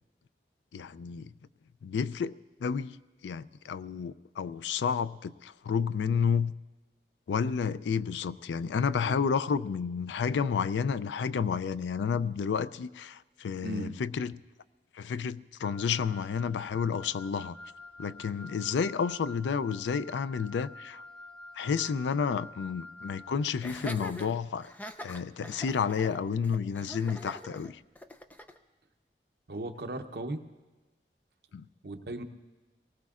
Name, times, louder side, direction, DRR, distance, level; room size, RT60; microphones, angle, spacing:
voice 1, 0.7-1.3 1.8-2.3 2.6-3.0 3.2-6.5 7.3-14.3 15.0-17.6 18.0-21.0 21.6-24.7 25.0-27.8 31.5-31.6, left 6 dB, 90° left, 0.4 m, -30 dB
voice 2, 13.6-13.9 29.5-30.4 31.8-32.2, right 1 dB, 65° right, 0.8 m, -36 dB
Wind instrument woodwind instrument, 15.6-23.4, left 2 dB, 30° left, 1.2 m, -48 dB
Laughter, 23.6-28.6, equal, 10° left, 0.4 m, -43 dB
25.5 x 19.5 x 2.4 m
head